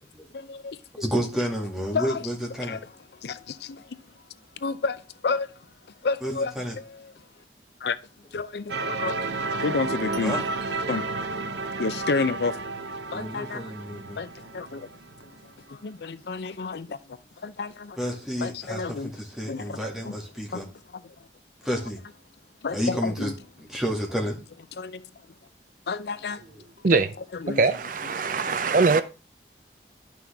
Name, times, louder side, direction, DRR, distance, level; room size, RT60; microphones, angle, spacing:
voice 1, 0.3-1.1 1.9-2.2 2.6-2.8 3.2-4.0 4.6-5.5 6.0-7.1 7.8-8.0 8.3-9.3 9.6-10.4 10.9-12.6 13.1-13.7 14.2-14.9 15.7-18.0 18.4-19.1 19.5-20.2 20.5-21.1 22.6-23.3 24.8-25.0 25.9-26.4 26.9-27.0 27.4-27.6 28.2-28.3, left 4 dB, 70° left, 0.5 m, -31 dB
voice 2, 1.0-2.8 6.2-6.8 10.2-10.4 13.1-14.2 18.0-20.7 21.6-22.0 22.7-24.4 26.5-26.6, equal, 5° right, 2.2 m, -30 dB
sound 1, 8.7-15.5, right 3 dB, 85° right, 0.7 m, -32 dB
voice 3, 27.5-29.0, right 4 dB, 50° right, 0.5 m, -22 dB
11.5 x 6.1 x 3.5 m
head